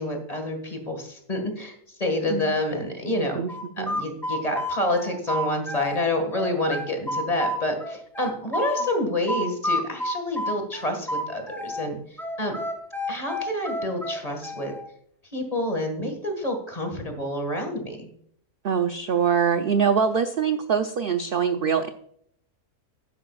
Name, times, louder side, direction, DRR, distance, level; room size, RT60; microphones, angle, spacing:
voice 1, 0.0-3.4 3.8-12.0 12.4-12.6 13.1-14.7 15.3-18.1, left 1 dB, 25° left, 4 dB, 1.9 m, -28 dB
sound 1, 3.5-6.0 6.3-8.9 9.3-11.9 12.2-14.8, left 1 dB, ahead, 1.6 m, -29 dB
voice 2, 18.6-21.9, right 7 dB, 55° right, 8 dB, 0.6 m, -23 dB
12.0 x 10.0 x 2.4 m, 0.66 s
omnidirectional pair, 1.5 m